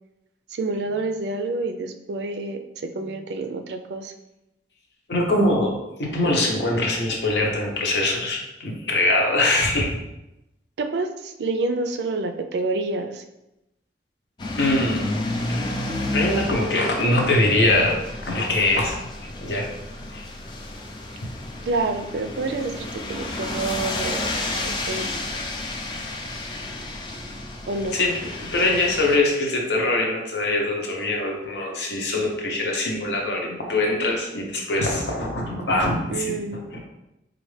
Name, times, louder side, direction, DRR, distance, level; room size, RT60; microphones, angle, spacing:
voice 1, 0.5-4.1 10.8-13.2 21.7-25.1 27.7-28.0 36.1-36.6, right 3 dB, 75° right, 6 dB, 0.4 m, -28 dB
voice 2, 5.1-5.7 6.0-9.9 14.6-15.1 15.4-15.6 16.1-19.0 19.4-19.7 20.1-20.3 27.9-28.1 28.4-36.3 36.7-36.8, left 2 dB, 80° left, 0 dB, 0.8 m, -23 dB
sound 1, 14.4-29.2, left 2 dB, 25° left, 0.4 m, -31 dB
4.2 x 2.5 x 3.2 m, 0.91 s
head